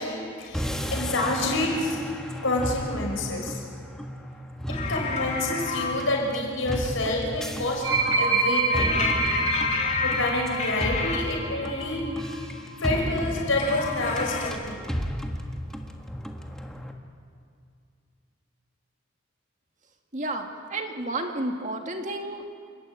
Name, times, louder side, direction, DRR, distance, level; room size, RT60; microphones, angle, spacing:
voice 1, 0.0-2.0 2.4-3.6 4.9-7.8 8.2-8.9 10.0-12.0 12.8-14.8, left 2 dB, 70° left, 0 dB, 5.8 m, -28 dB
sound 1, 0.5-16.9, equal, 5° left, 1.5 m, -34 dB
sound 2, 4.7-5.9 8.7-11.2 13.2-14.5, left 5 dB, 35° left, 3.1 m, -30 dB
sound 3, 7.8-12.4 12.7-13.0, right 3 dB, 75° right, 3.9 m, -27 dB
voice 2, 20.1-22.5, right 2 dB, 35° right, 4 dB, 2.0 m, -31 dB
28.5 x 14.0 x 9.0 m, 2.3 s
head